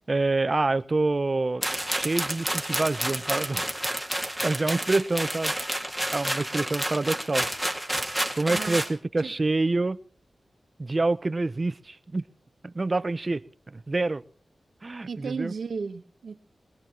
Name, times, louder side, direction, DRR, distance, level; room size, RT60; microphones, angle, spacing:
voice 1, 0.1-3.8 4.4-5.5 6.1-7.5 7.9-10.0 10.8-12.2 12.6-14.2 14.8-15.5, right 3 dB, 35° right, 0.7 m, -27 dB
sound 1, 1.6-8.9, right 1 dB, 5° left, 2.0 m, -30 dB
voice 2, 8.5-8.8 9.2-9.3 15.1-16.4, right 5 dB, 80° right, 1.1 m, -34 dB
21.0 x 20.5 x 3.0 m
wide cardioid pair, 110°, 0 cm